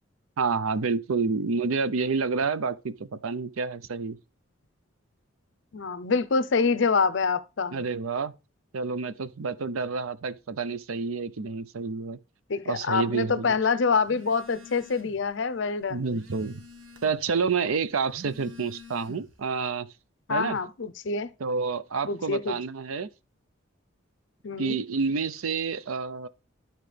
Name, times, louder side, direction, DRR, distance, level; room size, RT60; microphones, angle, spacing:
voice 1, 0.4-4.2 7.7-8.3 8.7-12.2 12.7-13.6 15.9-16.6 17.0-19.9 20.3-20.6 21.4-23.1 24.6-26.3, right 4 dB, 90° right, 0.6 m, -29 dB
voice 2, 5.7-7.8 12.5-16.0 20.3-21.3 22.1-22.6 24.4-24.8, left 5 dB, 60° left, 0.6 m, -26 dB
Telephone, 14.0-15.3 15.7-17.3 18.0-19.5, left 2 dB, 70° right, 1.5 m, -47 dB
12.5 x 4.4 x 3.3 m
head